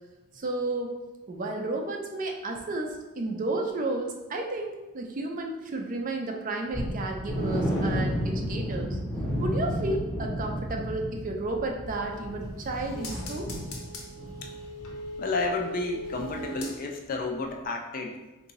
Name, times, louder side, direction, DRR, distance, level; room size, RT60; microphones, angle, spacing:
voice 1, 0.4-0.9 1.3-9.0 9.4-13.6, right 2 dB, 35° right, 2 dB, 0.4 m, -32 dB
sound 1, 6.7-14.5 14.8-14.9 15.4-15.5, equal, 15° left, 0.9 m, -32 dB
sound 2, 12.0-17.2 17.5-17.6, left 1 dB, 70° left, 0.7 m, -40 dB
voice 2, 15.2-18.2, left 3 dB, 40° left, 2 dB, 0.4 m, -31 dB
3.6 x 2.6 x 2.9 m, 1.1 s
head